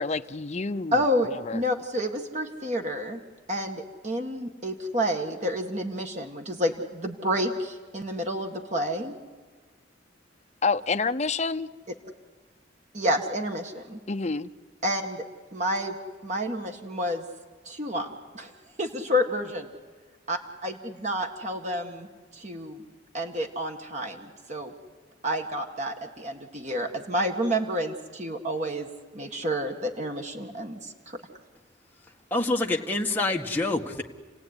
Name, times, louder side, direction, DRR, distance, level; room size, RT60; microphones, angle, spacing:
voice 1, 0.0-1.0 1.5-1.6 10.6-11.7 14.1-14.5, left 4 dB, 35° left, 0.7 m, -28 dB
voice 2, 0.9-3.2 3.5-9.2 12.9-14.0 14.8-15.2 15.5-16.0 16.2-17.2 17.7-18.5 18.8-19.7 20.3-22.1 22.3-22.8 23.1-24.7 25.2-31.2, equal, 35° right, 1.9 m, -29 dB
voice 3, 32.3-34.0, left 2 dB, 10° left, 1.6 m, -26 dB
29.5 x 17.0 x 9.8 m
head